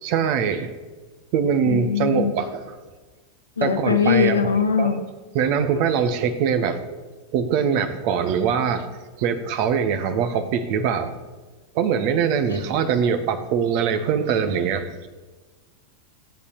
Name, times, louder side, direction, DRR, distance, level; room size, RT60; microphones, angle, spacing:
voice 1, 0.0-0.7 1.3-2.6 3.6-5.0 5.3-7.0 7.3-8.9 9.2-11.1 11.7-14.9, right 7 dB, 45° right, 9 dB, 1.4 m, -23 dB
voice 2, 1.9-2.3 3.6-5.0, left 6 dB, 75° left, 5 dB, 1.6 m, -20 dB
16.5 x 8.6 x 7.1 m, 1.3 s
figure-of-eight pair, 90°, 0 cm